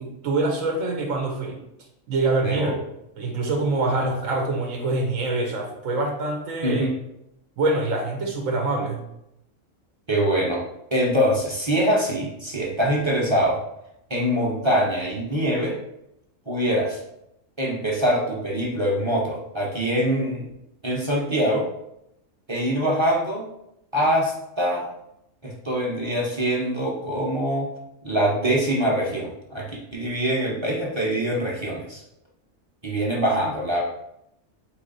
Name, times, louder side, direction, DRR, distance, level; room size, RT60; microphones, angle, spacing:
voice 1, 0.0-1.6 2.1-2.8 3.2-6.9 7.6-9.0, right 2 dB, 90° right, 0 dB, 1.2 m, -25 dB
voice 2, 2.4-2.7 3.9-4.1 6.6-6.9 10.1-10.6 10.9-13.6 14.1-15.8 16.5-17.0 17.6-20.5 20.8-21.7 22.5-23.5 23.9-24.9 25.4-27.7 28.0-32.0 32.8-33.8, equal, 25° right, -3 dB, 0.8 m, -24 dB
4.1 x 3.1 x 3.9 m, 0.81 s
omnidirectional pair, 1.3 m